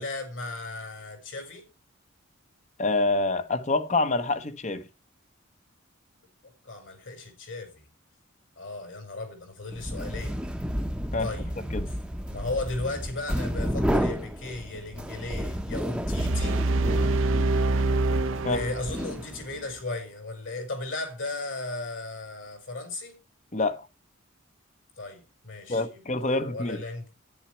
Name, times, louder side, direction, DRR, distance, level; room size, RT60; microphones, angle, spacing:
voice 1, 0.0-1.6 6.4-7.9 8.6-10.4 11.2-11.5 12.3-16.6 18.5-23.2 25.0-27.1, left 2 dB, 65° left, 4.8 m, -36 dB
voice 2, 2.8-4.9 11.1-11.3 11.7-11.9 18.4-18.6 23.5-23.9 25.7-26.8, left 2 dB, 35° left, 1.0 m, -26 dB
sound 1, 9.7-19.6, equal, 5° right, 0.9 m, -32 dB
sound 2, 16.2-19.2, right 2 dB, 70° right, 0.7 m, -25 dB
11.0 x 10.0 x 4.5 m
head